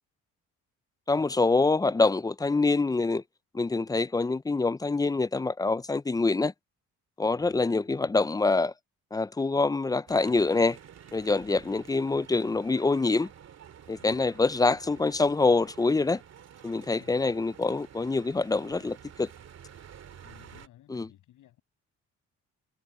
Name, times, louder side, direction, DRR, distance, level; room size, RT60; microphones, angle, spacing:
voice 1, 1.1-3.2 3.5-6.5 7.2-8.7 9.1-10.8 11.1-13.3 13.9-16.2 16.6-19.3 20.9-21.0, left 3 dB, 10° left, 0.5 m, -25 dB
voice 2, 7.3-8.3 11.4-11.6 14.0-14.6 16.9-17.2 20.1-21.6, left 13 dB, 85° left, 7.5 m, -57 dB
sound 1, 10.1-20.7, right 9 dB, 60° right, 2.4 m, -50 dB
cardioid pair, 90°, 30 cm